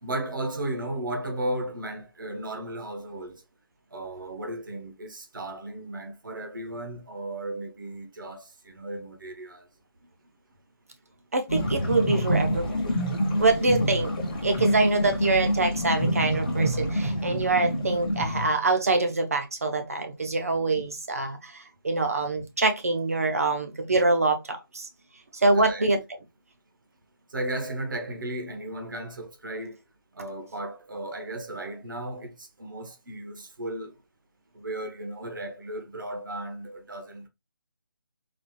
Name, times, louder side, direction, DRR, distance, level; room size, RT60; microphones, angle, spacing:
voice 1, 0.0-3.4 3.9-9.6 25.5-25.9 27.3-29.7 30.2-33.9 34.5-37.3, right 1 dB, 60° right, 1.0 m, -35 dB
voice 2, 11.3-12.8 13.4-14.1 14.4-24.9 25.3-26.0, right 3 dB, 40° right, 0.7 m, -25 dB
sound 1, 11.5-18.5, equal, 20° left, 0.8 m, -27 dB
4.1 x 2.4 x 3.0 m
figure-of-eight pair, 175°, 12 cm